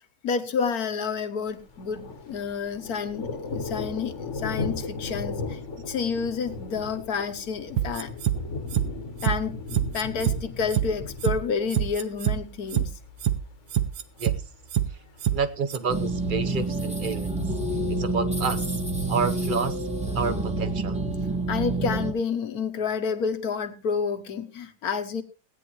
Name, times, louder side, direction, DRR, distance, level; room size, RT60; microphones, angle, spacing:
voice 1, 0.2-5.6 5.9-8.1 9.2-9.6 9.9-12.9 21.5-25.2, left 6 dB, 70° left, 9 dB, 1.6 m, -29 dB
Thunder, 1.5-17.1, left 3 dB, 50° left, 1.5 m, -38 dB
sound 1, 7.8-8.4 8.7-8.9 9.2-9.4 9.7-10.4 10.7-10.9 11.2-11.4 11.7-12.4 12.7-12.9 13.2-13.4 13.7-14.4 14.7-14.9 15.2-15.4 15.7-15.8, right 11 dB, 80° right, 1.5 m, -24 dB
voice 2, 15.3-17.3 17.9-18.8 19.1-19.8 20.1-21.0, right 5 dB, 40° right, 11 dB, 0.8 m, -29 dB
sound 2, 15.9-22.1, right 2 dB, 5° right, 1.4 m, -28 dB
18.0 x 9.8 x 3.1 m, 0.32 s
omnidirectional pair, 1.7 m